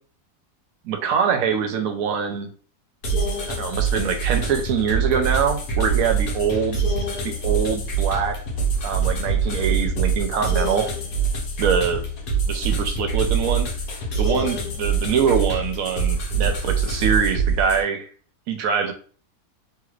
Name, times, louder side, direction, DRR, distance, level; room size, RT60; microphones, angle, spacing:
voice 1, 0.8-2.5 3.5-6.8 7.2-8.4 8.8-10.9 11.6-12.0 12.5-13.7 14.2-18.1 18.5-18.9, right 6 dB, 70° right, 6 dB, 1.0 m, -23 dB
sound 1, 3.0-17.8, right 5 dB, 75° left, 1.4 m, -24 dB
3.1 x 3.1 x 2.4 m, 0.41 s
omnidirectional pair, 1.7 m